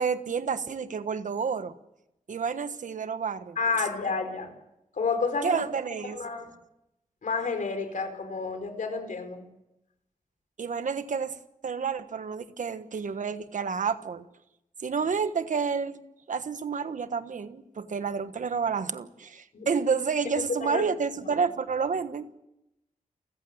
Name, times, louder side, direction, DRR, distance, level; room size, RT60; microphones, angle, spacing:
voice 1, 0.0-1.7 2.3-3.6 5.4-6.2 10.6-11.4 11.6-14.3 14.8-22.3, right 5 dB, 70° right, 11 dB, 1.3 m, -30 dB
voice 2, 3.6-4.5 4.9-5.5 6.1-6.5 7.2-9.4 19.5-19.7 20.6-20.8, left 4 dB, 70° left, 7 dB, 4.5 m, -30 dB
29.5 x 15.0 x 8.0 m, 0.90 s
wide cardioid pair, 115°, 14 cm